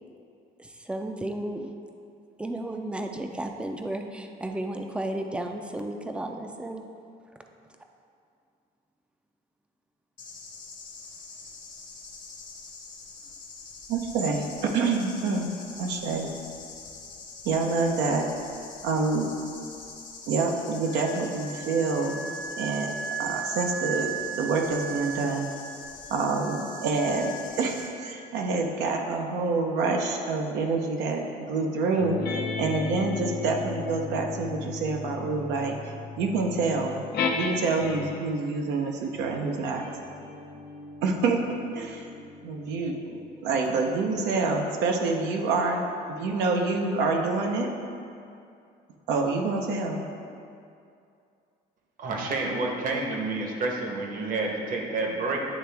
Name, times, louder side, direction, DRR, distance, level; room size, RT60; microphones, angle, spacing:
voice 1, 0.6-1.7 2.4-6.8, right 1 dB, 5° right, 4 dB, 0.4 m, -33 dB
sound 1, 10.2-27.9, left 4 dB, 50° left, 1.0 m, -45 dB
voice 2, 13.9-15.5 15.8-16.3 17.4-18.3 18.8-19.3 20.3-22.9 23.2-25.5 26.1-35.8 36.2-37.0 37.3-39.8 41.0-41.4 41.7-42.1 42.4-45.9 46.2-47.7 49.1-50.0, right 3 dB, 85° right, 2 dB, 0.7 m, -27 dB
Wind instrument woodwind instrument, 20.8-28.3, right 5 dB, 70° right, 1.4 m, -37 dB
sound 2, 32.0-38.4 39.1-44.1, left 4 dB, 75° left, 0.8 m, -36 dB
voice 3, 52.0-55.4, right 3 dB, 55° right, 0 dB, 1.1 m, -29 dB
9.3 x 3.4 x 3.4 m, 2.5 s
cardioid pair, 110°, 17 cm